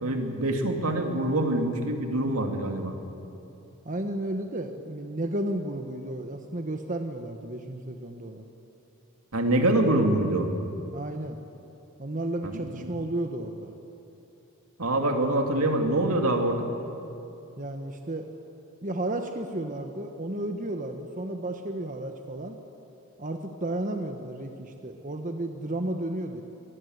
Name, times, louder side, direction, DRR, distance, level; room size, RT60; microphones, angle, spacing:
voice 1, 0.0-3.0 9.3-10.5 12.4-12.9 14.8-16.6, right 1 dB, 80° right, 4 dB, 2.6 m, -25 dB
voice 2, 3.8-8.4 10.9-11.4 12.0-13.7 17.6-18.3 18.8-22.5 23.2-26.4, right 1 dB, 35° right, 5 dB, 1.2 m, -33 dB
25.0 x 20.0 x 8.0 m, 2.9 s
head